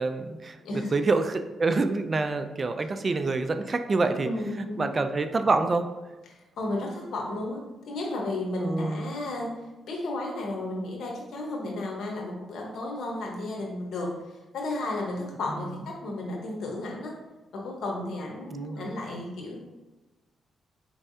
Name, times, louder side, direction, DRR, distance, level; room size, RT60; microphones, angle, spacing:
voice 1, 0.0-4.3 4.6-5.9 8.6-9.1 15.5-15.7 18.5-19.0, right 3 dB, 35° right, 8 dB, 0.3 m, -27 dB
voice 2, 0.6-0.9 4.2-4.9 6.3-7.6 7.9-9.5 9.9-14.1 14.5-17.2 17.5-19.6, left 2 dB, 75° left, 0 dB, 1.0 m, -33 dB
4.6 x 3.2 x 2.7 m, 1.2 s
cardioid pair, 80°, 0 cm